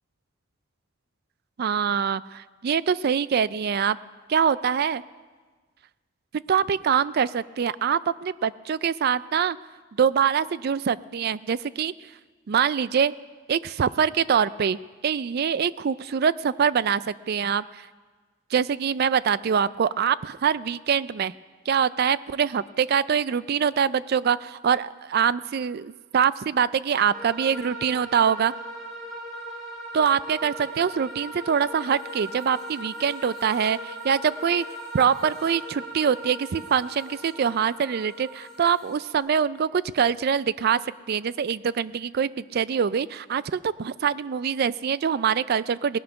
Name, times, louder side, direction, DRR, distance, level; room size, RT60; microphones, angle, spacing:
voice 1, 1.6-4.0 4.3-5.0 6.5-9.6 10.0-11.9 12.5-13.1 13.5-14.8 15.0-17.9 18.5-21.3 21.7-28.5 29.9-34.6 34.9-40.8 41.1-46.0, right 7 dB, 50° right, 18 dB, 0.3 m, -24 dB
sound 1, 27.1-39.2, right 1 dB, 5° left, 3.4 m, -39 dB
18.5 x 11.0 x 5.8 m, 1.4 s
head